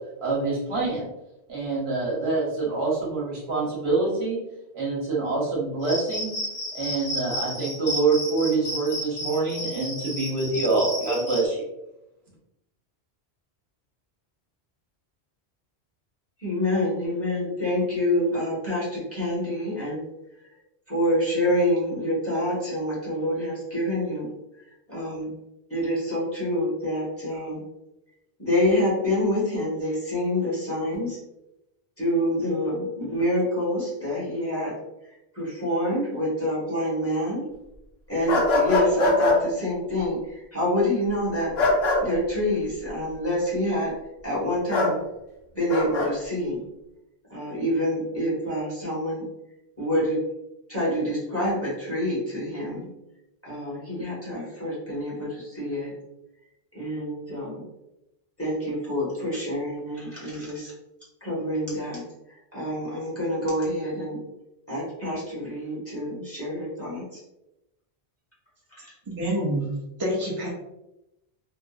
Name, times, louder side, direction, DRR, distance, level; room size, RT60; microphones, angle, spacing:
voice 1, 0.2-1.1 1.5-4.4 4.7-6.3 6.7-11.6, right 3 dB, 70° right, -5 dB, 1.2 m, -26 dB
Cricket, 5.8-11.4, equal, 40° left, 0.5 m, -32 dB
voice 2, 16.4-20.5 20.9-24.3 24.6-25.3 25.7-27.6 28.4-31.2 32.0-37.4 38.1-41.5 42.0-43.9 44.2-45.0 45.5-46.6 47.3-49.3 49.8-50.2 50.7-52.9 53.4-55.9 56.7-57.6 58.4-60.7 61.2-62.0 62.3-64.2 64.7-67.2 68.7-69.0, left 1 dB, 15° left, -7 dB, 1.1 m, -27 dB
sound 1, 38.3-39.4 41.6-42.0 44.7-44.9 45.7-46.1, left 2 dB, 70° left, 0.9 m, -21 dB
voice 3, 69.1-69.7 70.0-70.5, equal, 30° right, -5 dB, 0.4 m, -27 dB
2.8 x 2.5 x 2.4 m, 0.91 s
omnidirectional pair, 1.1 m